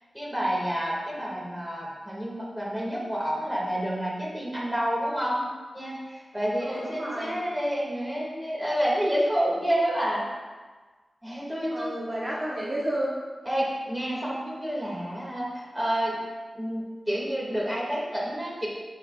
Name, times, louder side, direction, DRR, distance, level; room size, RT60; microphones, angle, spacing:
voice 1, 0.1-5.4 5.7-10.3 11.2-11.9 13.5-16.2 16.5-18.7, equal, 5° right, -5 dB, 2.0 m, -29 dB
voice 2, 6.6-7.4 11.7-13.2, right 1 dB, 30° right, -6 dB, 1.0 m, -31 dB
10.0 x 5.7 x 2.3 m, 1.4 s
wide cardioid pair, 125°, 0 cm